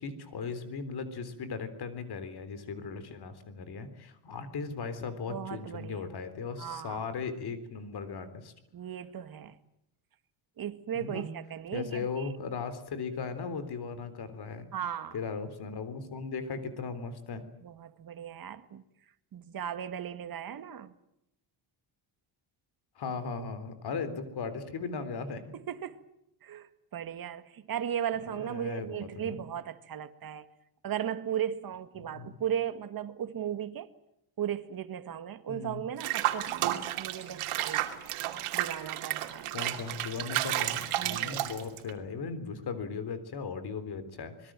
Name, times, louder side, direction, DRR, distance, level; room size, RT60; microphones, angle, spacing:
voice 1, 0.0-8.5 10.9-11.3 11.7-14.7 15.1-17.4 23.0-25.4 28.3-29.4 32.0-32.4 35.5-35.8 39.5-44.5, left 5 dB, 50° left, 3.8 m, -37 dB
voice 2, 5.3-6.1 6.6-7.0 8.7-9.6 10.6-12.3 14.7-15.2 17.6-18.8 19.3-20.9 25.5-26.0 26.4-30.5 30.8-33.9 34.4-38.2 38.5-39.5 41.0-41.4, right 9 dB, 45° right, 1.9 m, -36 dB
Water / Bathtub (filling or washing), 36.0-41.9, right 13 dB, 90° right, 2.8 m, -32 dB
26.0 x 21.5 x 7.6 m
cardioid pair, 140°, 49 cm